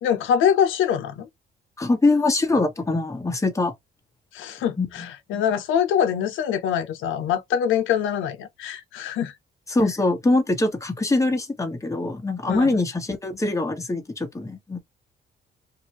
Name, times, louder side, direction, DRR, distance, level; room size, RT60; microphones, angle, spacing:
voice 1, 0.0-1.3 4.3-9.3 12.5-12.8, left 8 dB, 90° left, 0.8 m, -24 dB
voice 2, 1.8-3.7 4.8-4.9 5.3-5.4 9.7-14.8, left 2 dB, 15° left, 1.2 m, -23 dB
2.8 x 2.6 x 3.0 m
cardioid pair, 90°, 20 cm